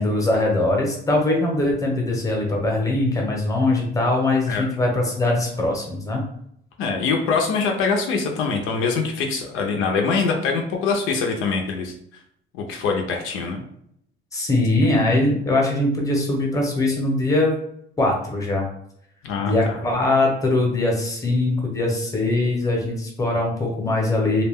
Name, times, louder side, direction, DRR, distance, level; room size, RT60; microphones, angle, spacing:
voice 1, 0.0-6.2 14.3-17.5 18.0-18.6 19.4-24.4, left 2 dB, 15° left, 0 dB, 0.8 m, -21 dB
voice 2, 6.8-11.9 12.5-13.6 19.2-19.5, left 4 dB, 85° left, 2 dB, 0.5 m, -23 dB
2.3 x 2.1 x 3.4 m, 0.72 s
cardioid pair, 120°, 20 cm